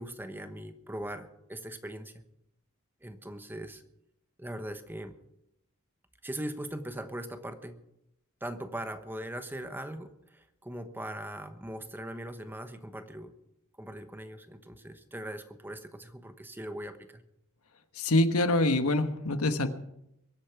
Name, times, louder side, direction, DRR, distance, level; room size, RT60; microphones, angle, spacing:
voice 1, 0.0-2.2 3.0-3.8 4.4-5.2 6.2-7.8 8.4-13.3 13.8-17.2, right 1 dB, 10° right, 8 dB, 1.1 m, -40 dB
voice 2, 17.9-19.7, left 2 dB, 80° left, 9 dB, 1.3 m, -25 dB
23.0 x 8.5 x 5.9 m, 0.81 s
head